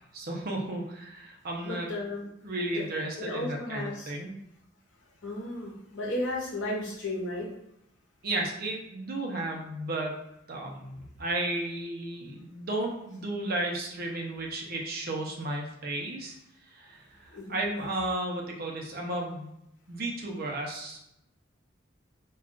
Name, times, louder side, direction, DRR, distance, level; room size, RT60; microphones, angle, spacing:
voice 1, 0.1-1.9 2.4-4.3 8.2-10.2 10.5-16.4 16.7-19.5 19.9-21.0, right 1 dB, 50° right, 0 dB, 0.6 m, -33 dB
voice 2, 1.6-2.3 2.7-2.8 3.2-4.1 5.2-7.5 17.3-17.5, left 1 dB, 70° left, -3 dB, 0.9 m, -34 dB
2.3 x 2.3 x 3.7 m, 0.81 s
head